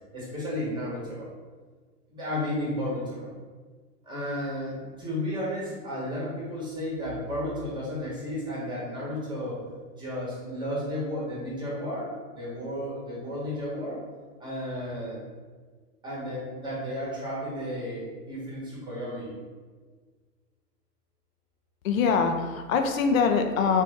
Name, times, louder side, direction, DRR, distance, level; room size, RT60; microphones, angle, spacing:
voice 1, 0.1-1.3 2.1-3.3 4.0-9.6 10.0-14.0 14.4-15.2 16.0-19.3, left 1 dB, 10° right, -6 dB, 1.1 m, -33 dB
voice 2, 21.8-23.8, left 5 dB, 60° left, 6 dB, 0.6 m, -23 dB
3.3 x 2.7 x 3.4 m, 1.5 s
hypercardioid pair, 120°, 47 cm